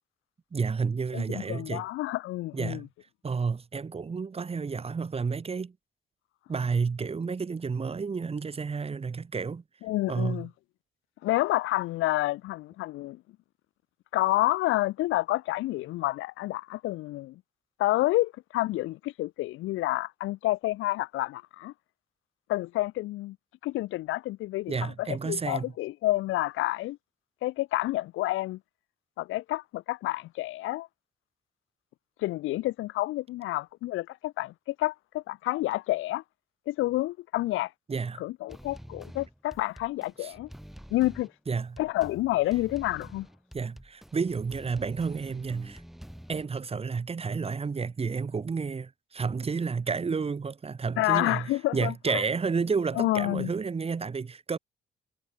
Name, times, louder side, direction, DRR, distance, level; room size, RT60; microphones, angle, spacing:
voice 1, 0.5-1.9 2.5-2.9 3.2-5.7 6.5-9.6 10.1-10.5 24.7-25.7 37.9-38.2 40.2-40.3 41.5-41.8 43.5-45.8 46.3-54.6, right 5 dB, 30° right, 1.3 m, -31 dB
voice 2, 1.1-2.9 9.8-10.5 11.2-13.2 14.1-17.4 17.8-21.7 22.5-23.4 23.6-27.0 27.4-28.6 29.2-30.9 32.2-36.2 36.7-37.7 38.2-40.5 40.9-41.3 41.8-43.3 51.0-52.2 53.0-53.5, left 17 dB, 85° left, 0.7 m, -29 dB
sound 1, 38.5-46.4, equal, ahead, 2.6 m, -47 dB
cardioid pair, 90°, 20 cm